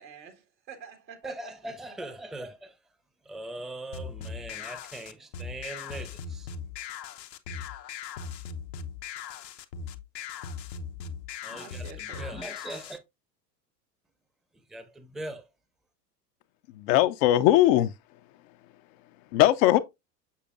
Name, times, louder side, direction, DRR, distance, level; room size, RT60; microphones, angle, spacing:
voice 1, 0.0-2.0 11.5-12.4, right 7 dB, 85° right, 2.1 m, -47 dB
voice 2, 1.2-2.8 3.2-6.5 11.4-13.0 14.5-15.5, right 2 dB, ahead, 0.6 m, -41 dB
sound 1, 3.9-13.0, left 6 dB, 75° left, 0.9 m, -39 dB
voice 3, 16.7-17.9 19.3-19.8, left 14 dB, 40° left, 0.5 m, -20 dB
7.0 x 6.6 x 2.5 m
hypercardioid pair, 90°, 50 cm